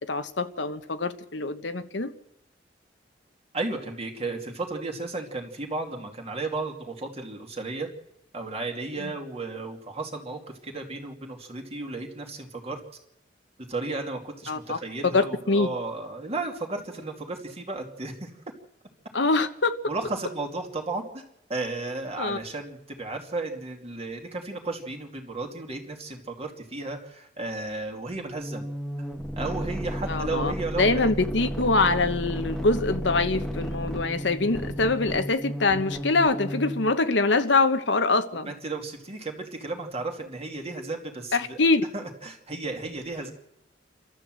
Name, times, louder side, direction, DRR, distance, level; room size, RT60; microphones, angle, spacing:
voice 1, 0.0-2.1 9.0-9.1 14.5-14.8 15.1-15.7 19.1-19.7 22.2-22.4 30.1-30.5 30.8-38.5 41.3-41.9, left 3 dB, 70° left, 1.1 m, -24 dB
voice 2, 3.5-7.9 8.3-12.8 13.7-18.3 19.9-21.2 21.5-28.7 29.4-31.1 38.4-41.6 41.9-43.3, right 3 dB, 35° right, 2.5 m, -34 dB
sound 1, 28.4-37.0, equal, ahead, 1.7 m, -33 dB
28.5 x 13.0 x 7.7 m
head